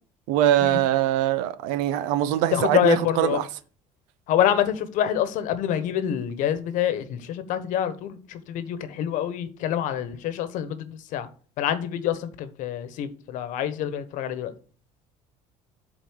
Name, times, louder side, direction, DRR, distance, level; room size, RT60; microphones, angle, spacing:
voice 1, 0.3-3.5, right 12 dB, 85° right, 0.6 m, -22 dB
voice 2, 2.5-3.4 4.3-11.3 11.6-14.5, left 10 dB, 70° left, 1.2 m, -26 dB
8.3 x 4.0 x 6.2 m
supercardioid pair, 95°, 14 cm